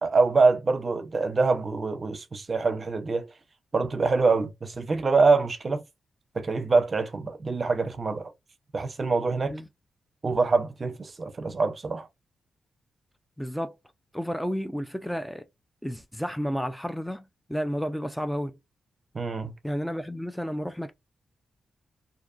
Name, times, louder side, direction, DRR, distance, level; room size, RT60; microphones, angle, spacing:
voice 1, 0.0-3.3 3.7-5.8 6.3-8.3 8.7-9.6 10.2-12.1 19.1-19.5, right 4 dB, 45° right, 0.6 m, -25 dB
voice 2, 13.4-13.7 14.1-15.4 15.8-17.2 17.5-18.5 19.6-20.9, equal, 5° left, 0.4 m, -31 dB
2.5 x 2.3 x 2.3 m
cardioid pair, 55°, 0 cm